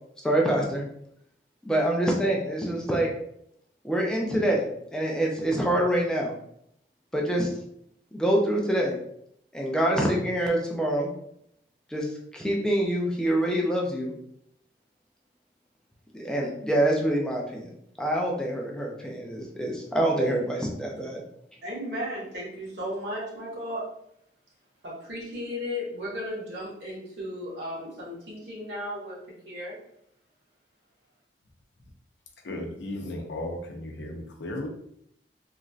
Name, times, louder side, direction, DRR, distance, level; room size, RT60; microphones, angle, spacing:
voice 1, 0.2-0.8 1.6-3.1 3.8-6.3 7.1-7.5 8.1-9.0 9.5-11.1 11.9-12.1 12.3-14.1 16.1-17.7 18.0-21.2, right 1 dB, 5° left, -1 dB, 0.4 m, -25 dB
voice 2, 21.6-23.8 24.8-29.2 29.4-29.7, equal, 70° right, -5 dB, 1.3 m, -35 dB
voice 3, 32.4-34.7, left 1 dB, 85° left, 3 dB, 0.6 m, -35 dB
3.0 x 2.6 x 2.3 m, 0.72 s
head